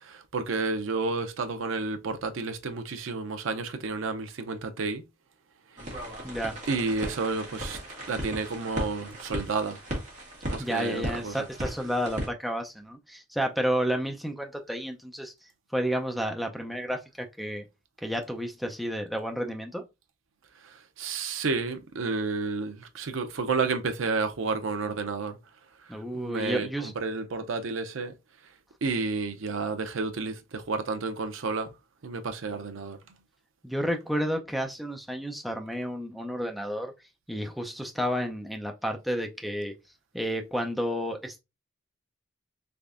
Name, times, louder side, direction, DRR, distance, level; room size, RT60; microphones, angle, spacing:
voice 1, 0.1-5.0 6.7-7.8 8.1-9.8 10.5-11.3 21.0-25.4 26.1-28.1 28.8-31.7 32.0-33.0, right 4 dB, 75° right, 0.6 m, -31 dB
sound 1, 5.8-12.3, equal, 35° right, 1.4 m, -36 dB
voice 2, 6.2-6.5 10.6-15.3 15.7-17.7 18.0-19.8 25.9-26.9 33.6-36.9 37.3-39.7 40.1-41.4, equal, ahead, 0.5 m, -31 dB
3.5 x 3.3 x 2.5 m
head